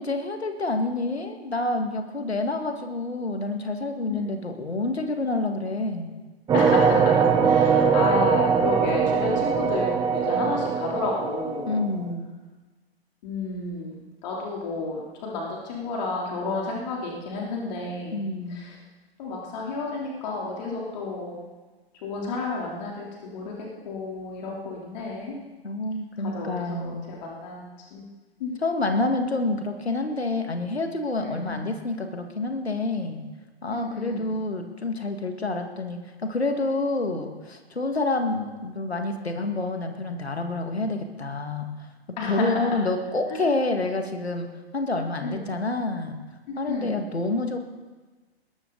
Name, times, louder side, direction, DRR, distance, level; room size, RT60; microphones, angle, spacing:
voice 1, 0.0-6.1 11.7-12.3 18.1-18.6 25.6-27.1 28.6-33.2 33.6-41.7 42.2-46.2 46.6-47.6, left 2 dB, 80° left, 5 dB, 2.1 m, -28 dB
voice 2, 6.5-11.8 13.2-13.9 14.2-18.2 18.5-18.7 19.2-21.4 22.0-23.5 23.9-25.4 26.3-26.8 27.1-28.1 28.4-28.5 31.2-31.6 33.7-34.2 42.2-42.5 43.3-43.4 45.2-45.4 46.5-46.9, left 3 dB, 45° left, -2 dB, 3.5 m, -31 dB
sound 1, 6.5-11.9, right 6 dB, 10° right, 0.9 m, -21 dB
21.0 x 12.5 x 4.0 m, 1.3 s
figure-of-eight pair, 115°, 31 cm